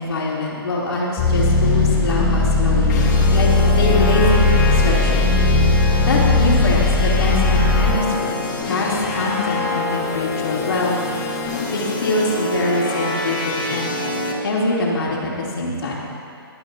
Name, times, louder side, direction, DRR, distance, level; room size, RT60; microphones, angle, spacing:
voice 1, 0.0-3.0 3.3-5.4 6.0-11.0 11.7-14.0 14.4-16.0, left 2 dB, 70° left, -4 dB, 3.1 m, -23 dB
sound 1, 1.2-7.9, left 3 dB, 25° left, 3.3 m, -17 dB
sound 2, 2.9-14.3, left 3 dB, 45° left, 2.2 m, -26 dB
23.5 x 8.8 x 2.8 m, 2.5 s
figure-of-eight pair, 135°, 13 cm